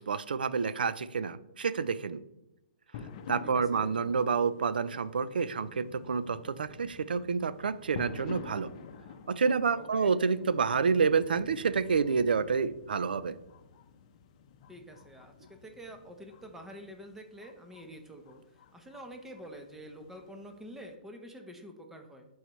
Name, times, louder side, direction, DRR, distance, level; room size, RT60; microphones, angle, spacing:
voice 1, 0.0-2.2 3.3-8.7 9.3-13.3, right 5 dB, 85° right, 15 dB, 0.5 m, -29 dB
sound 1, 2.9-20.9, left 6 dB, 45° left, 0.7 m, -49 dB
voice 2, 3.5-3.9 9.7-10.1 14.7-22.3, equal, 5° right, 4 dB, 0.9 m, -47 dB
11.5 x 4.7 x 3.1 m, 0.94 s
hypercardioid pair, 145°, 5 cm